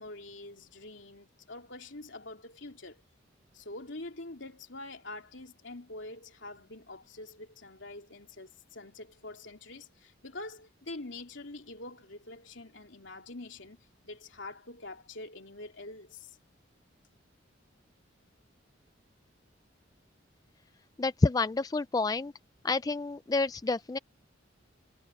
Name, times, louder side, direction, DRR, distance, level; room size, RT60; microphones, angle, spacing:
voice 1, 0.0-3.0 3.5-16.4, left 2 dB, 70° left, 3.3 m, -45 dB
voice 2, 21.0-22.3 22.6-24.0, left 3 dB, 20° left, 0.3 m, -28 dB
head